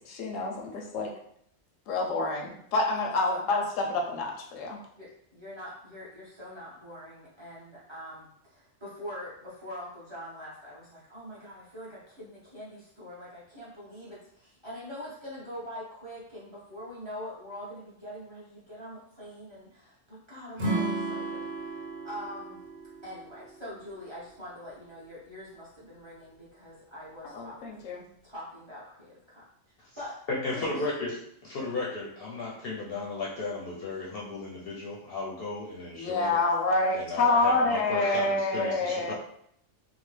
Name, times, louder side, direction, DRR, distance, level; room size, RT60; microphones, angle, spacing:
voice 1, 0.1-1.1 1.9-4.8 27.3-28.1 35.9-39.1, left 2 dB, 80° left, 0 dB, 1.0 m, -27 dB
voice 2, 5.0-22.6 23.0-27.8 28.2-29.4 30.0-30.2 30.5-30.9, equal, 25° right, -8 dB, 0.8 m, -43 dB
Acoustic guitar / Strum, 20.6-23.8, right 2 dB, 85° right, 1.2 m, -33 dB
voice 3, 30.3-36.4 36.9-39.1, left 3 dB, 60° left, -4 dB, 0.7 m, -35 dB
2.9 x 2.1 x 3.2 m, 0.70 s
omnidirectional pair, 1.3 m